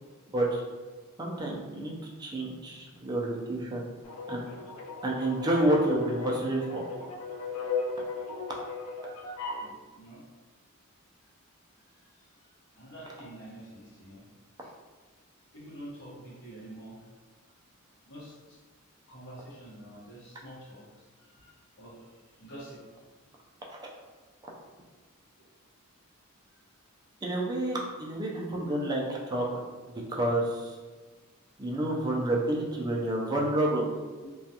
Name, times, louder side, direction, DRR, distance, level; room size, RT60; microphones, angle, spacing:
voice 1, 1.2-3.9 4.3-4.4 5.0-6.8 23.7-23.8 27.2-30.8 31.6-33.9, right 1 dB, 20° right, -2 dB, 0.4 m, -29 dB
sound 1, 4.0-9.7, left 4 dB, 80° left, 0.4 m, -36 dB
voice 2, 9.6-10.2 11.9-14.2 14.6-14.7 15.5-17.0 18.0-18.6 19.1-22.8, right 1 dB, 55° left, -7 dB, 1.0 m, -48 dB
2.3 x 2.2 x 2.7 m, 1.3 s
head